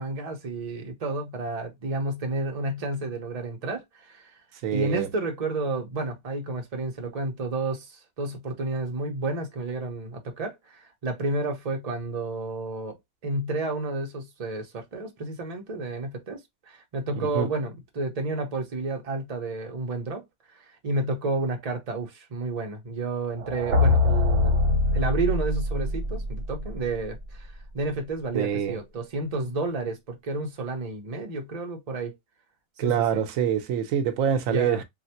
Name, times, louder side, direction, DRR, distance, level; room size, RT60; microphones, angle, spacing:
voice 1, 0.0-4.3 4.7-13.0 13.2-16.4 16.7-20.2 20.8-24.6 24.9-27.5 27.7-32.1 32.8-33.2 34.5-34.8, right 2 dB, 35° right, 0.8 m, -31 dB
voice 2, 4.6-5.1 17.1-17.5 28.3-28.8 32.8-34.8, right 8 dB, 90° right, 1.0 m, -25 dB
sound 1, 23.4-27.4, left 2 dB, 50° right, 1.1 m, -24 dB
3.2 x 2.5 x 2.8 m
omnidirectional pair, 1.4 m